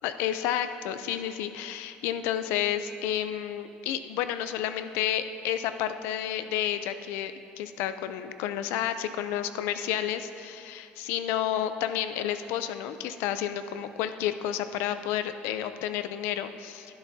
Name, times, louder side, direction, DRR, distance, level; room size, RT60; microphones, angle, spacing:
voice 1, 0.0-17.0, left 10 dB, 85° left, 10 dB, 0.5 m, -31 dB
12.5 x 12.0 x 2.8 m, 2.8 s
cardioid pair, 160°, 4 cm